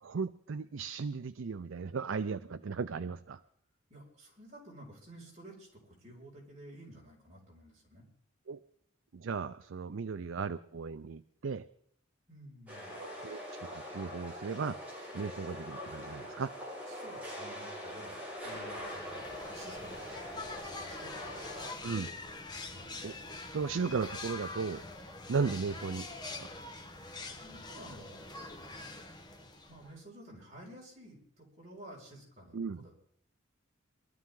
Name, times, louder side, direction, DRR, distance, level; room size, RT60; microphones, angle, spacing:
voice 1, 0.0-3.4 8.5-8.6 9.1-11.7 13.0-14.8 15.1-16.5 21.8-22.1 23.0-23.2 23.5-24.8 25.3-26.1 26.4-26.5 32.5-32.9, right 5 dB, 70° right, 12 dB, 0.5 m, -36 dB
voice 2, 3.9-8.0 10.1-10.2 12.3-13.1 16.9-19.2 19.5-21.9 22.7-23.0 27.4-28.2 28.6-28.9 29.7-33.0, right 1 dB, 35° right, -4 dB, 5.8 m, -53 dB
sound 1, 12.7-21.7, equal, 10° right, 5.5 m, -43 dB
sound 2, 18.4-30.0, left 3 dB, 20° left, 1.3 m, -45 dB
22.5 x 13.0 x 3.8 m, 0.66 s
head